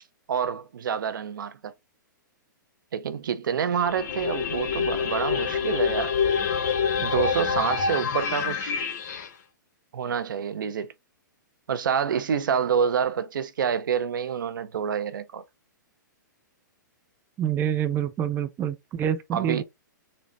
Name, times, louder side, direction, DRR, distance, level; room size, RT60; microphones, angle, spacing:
voice 1, 0.3-1.7 2.9-6.2 7.0-8.7 9.9-10.9 11.7-15.4 19.3-19.6, right 7 dB, 75° right, 0.5 m, -27 dB
sound 1, 3.8-9.3, left 6 dB, 55° left, 0.8 m, -26 dB
voice 2, 17.4-19.6, right 9 dB, 20° right, 0.4 m, -27 dB
3.9 x 2.0 x 3.2 m
hypercardioid pair, 130°, 11 cm